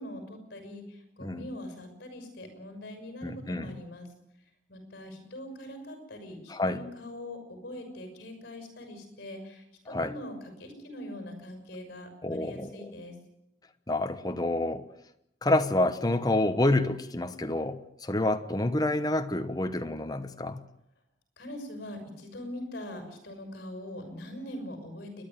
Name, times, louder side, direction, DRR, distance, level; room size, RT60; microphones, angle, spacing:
voice 1, 0.0-4.1 4.7-13.1 21.4-25.2, left 1 dB, 55° left, 6 dB, 6.4 m, -42 dB
voice 2, 3.2-3.8 6.5-6.8 9.9-10.1 12.2-12.8 13.9-14.8 15.4-20.6, left 1 dB, 20° left, 8 dB, 1.0 m, -28 dB
29.5 x 11.0 x 9.0 m, 0.83 s
head